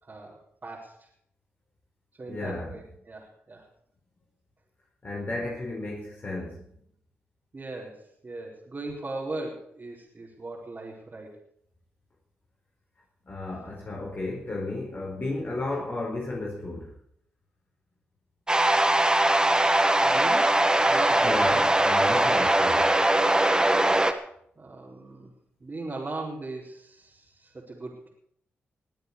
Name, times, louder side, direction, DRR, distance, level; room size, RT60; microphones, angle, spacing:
voice 1, 0.0-1.1 2.2-3.7 7.5-11.4 19.7-20.6 20.8-21.3 24.6-25.3 25.6-28.1, right 2 dB, 40° right, -5 dB, 4.5 m, -39 dB
voice 2, 2.3-2.7 5.0-6.6 13.3-16.9 21.2-22.9, left 2 dB, 40° left, -2 dB, 4.9 m, -33 dB
sound 1, 18.5-24.1, right 1 dB, 15° right, 1.8 m, -21 dB
21.5 x 8.0 x 6.9 m, 0.68 s
supercardioid pair, 45°, 5 cm